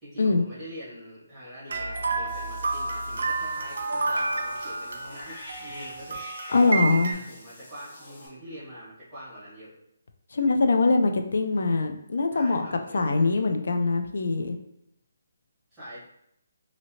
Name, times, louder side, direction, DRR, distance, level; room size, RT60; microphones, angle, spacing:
voice 1, 0.0-9.7 12.3-13.6 15.7-16.0, equal, 5° right, -13 dB, 1.3 m, -44 dB
sound 1, 1.7-7.1, right 3 dB, 65° right, 0.5 m, -30 dB
Cat / Bathtub (filling or washing), 2.3-8.3, left 2 dB, 25° left, 0.9 m, -43 dB
voice 2, 6.5-7.1 10.3-12.7 12.9-14.6, left 3 dB, 65° left, 6 dB, 0.4 m, -23 dB
2.8 x 2.6 x 2.8 m, 0.77 s
hypercardioid pair, 175°, 0 cm